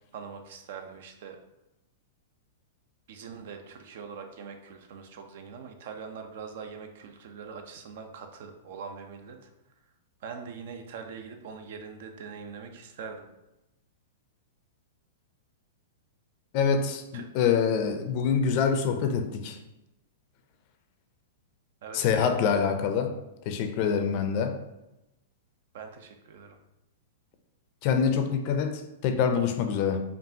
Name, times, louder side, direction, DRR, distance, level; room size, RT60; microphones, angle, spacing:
voice 1, 0.1-1.4 3.1-9.4 10.2-13.3 17.1-17.2 21.8-22.8 25.7-26.6, right 6 dB, 65° right, 6 dB, 0.6 m, -43 dB
voice 2, 16.5-19.6 21.9-23.1 23.5-24.6 27.8-30.0, left 6 dB, 45° left, 7 dB, 0.5 m, -25 dB
5.3 x 2.5 x 2.8 m, 0.93 s
hypercardioid pair, 140°, 0 cm